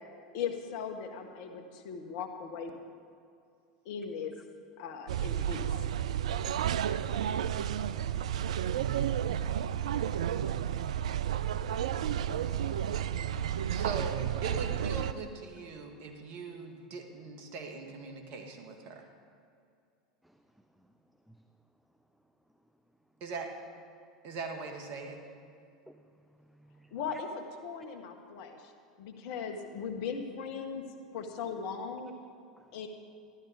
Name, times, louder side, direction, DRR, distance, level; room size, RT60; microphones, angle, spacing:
voice 1, 0.3-2.8 3.8-4.3 4.8-5.7 26.9-28.7 29.0-30.8 31.1-32.2 32.7-32.9, left 6 dB, 60° left, 5 dB, 1.5 m, -38 dB
sound 1, 5.1-15.1, right 10 dB, 75° right, 0.4 m, -31 dB
voice 2, 13.7-19.0 23.2-23.5 24.2-25.2, right 4 dB, 50° right, 3 dB, 1.9 m, -40 dB
voice 3, 25.9-27.2 32.6-32.7, right 1 dB, ahead, 7 dB, 0.6 m, -58 dB
13.0 x 12.0 x 5.1 m, 2.4 s
hypercardioid pair, 85°, 4 cm